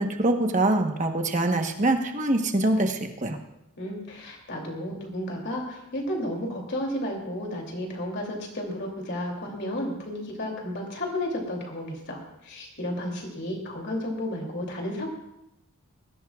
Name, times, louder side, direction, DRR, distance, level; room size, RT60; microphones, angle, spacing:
voice 1, 0.0-3.4, right 2 dB, 35° right, 5 dB, 1.1 m, -24 dB
voice 2, 3.8-15.1, left 1 dB, 50° left, 0 dB, 2.9 m, -32 dB
20.0 x 15.5 x 2.4 m, 0.85 s
head